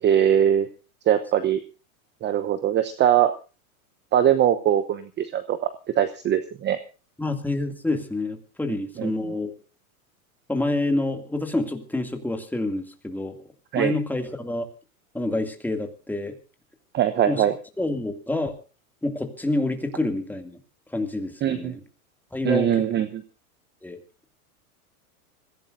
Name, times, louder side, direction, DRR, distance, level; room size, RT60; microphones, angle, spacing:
voice 1, 0.0-0.7 1.1-1.6 2.2-3.3 4.1-5.7 6.0-6.8 9.0-9.1 13.7-13.9 16.9-17.5 21.4-21.8 22.4-23.2, right 10 dB, 25° right, 11 dB, 0.9 m, -21 dB
voice 2, 7.2-9.5 10.5-13.3 13.7-14.7 15.1-16.4 17.3-17.4 17.8-18.5 19.0-20.6 20.9-21.8 22.3-22.9 23.8-24.0, left 2 dB, 5° left, 5 dB, 2.4 m, -27 dB
26.0 x 16.0 x 2.6 m, 0.33 s
hypercardioid pair, 125°, 44 cm